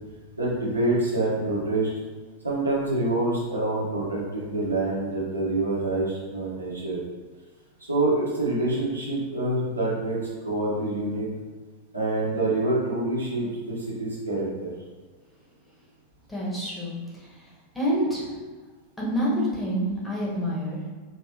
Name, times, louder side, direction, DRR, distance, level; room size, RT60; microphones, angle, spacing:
voice 1, 0.4-1.9 2.4-7.0 7.9-11.3 11.9-14.7, right 2 dB, 80° right, -6 dB, 1.2 m, -26 dB
voice 2, 16.3-17.5 17.7-18.3 19.0-20.9, equal, 5° left, -7 dB, 1.4 m, -28 dB
5.0 x 3.1 x 2.8 m, 1.4 s
figure-of-eight pair, 90°, 0 cm